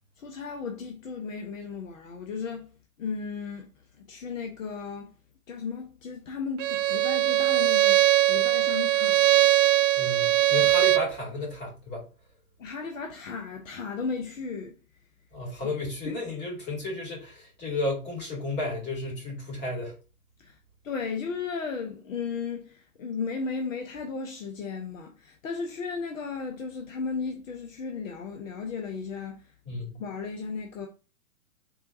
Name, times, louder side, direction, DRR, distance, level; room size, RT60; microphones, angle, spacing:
voice 1, 0.2-2.7 3.0-3.7 4.0-5.1 5.5-9.5 12.6-14.8 16.0-16.2 20.4-20.6 20.8-29.5 30.0-30.9, left 5 dB, 60° left, 0.8 m, -35 dB
Bowed string instrument, 6.6-11.1, right 14 dB, 60° right, 0.5 m, -21 dB
voice 2, 10.0-12.0 15.3-19.9 29.6-30.0, left 2 dB, 25° left, 2.4 m, -33 dB
4.5 x 3.2 x 2.6 m
figure-of-eight pair, 115°, 44 cm